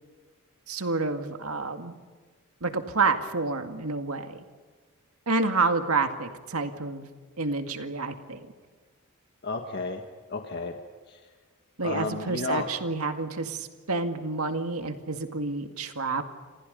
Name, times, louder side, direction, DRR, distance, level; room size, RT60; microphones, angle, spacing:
voice 1, 0.7-2.0 2.6-4.4 5.3-7.1 7.4-8.4 11.8-16.2, right 3 dB, 75° right, 7 dB, 2.1 m, -29 dB
voice 2, 9.4-10.0 10.3-10.8 11.1-11.2 11.8-12.7, left 3 dB, 50° left, 4 dB, 1.6 m, -32 dB
29.0 x 26.5 x 5.4 m, 1.4 s
head